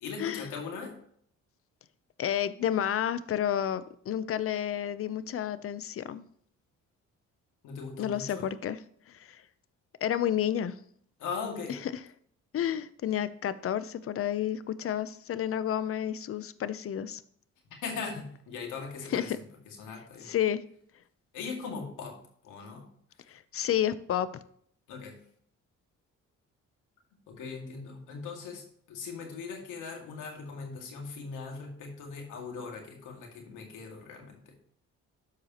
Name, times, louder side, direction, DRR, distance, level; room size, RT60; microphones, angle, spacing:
voice 1, 0.0-1.0 7.6-8.6 11.2-11.8 17.8-20.4 21.3-22.2 22.4-22.9 24.9-25.2 27.3-34.6, left 5 dB, 90° left, 1 dB, 2.1 m, -40 dB
voice 2, 2.2-6.2 8.0-8.8 9.3-9.4 10.0-10.8 12.5-17.2 19.1-19.4 20.3-20.6 23.3-24.3, left 10 dB, 50° left, 14 dB, 0.6 m, -30 dB
13.0 x 4.8 x 2.9 m, 0.64 s
cardioid pair, 90°, 30 cm